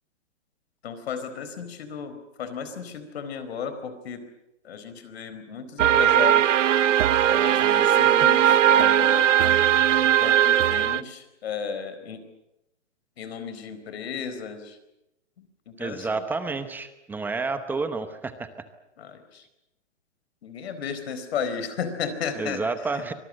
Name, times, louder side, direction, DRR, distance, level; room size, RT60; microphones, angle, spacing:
voice 1, 0.8-4.2 4.6-6.5 7.3-9.5 10.2-12.2 13.2-14.8 15.4-16.3 19.0-19.5 20.4-22.6 22.9-23.0, left 6 dB, 55° left, 10 dB, 4.5 m, -34 dB
sound 1, 5.8-11.0, right 10 dB, 80° right, 0.8 m, -19 dB
voice 2, 15.8-18.5 22.4-23.1, right 4 dB, 5° right, 11 dB, 0.8 m, -30 dB
25.0 x 19.5 x 8.8 m, 0.88 s
hypercardioid pair, 155°, 37 cm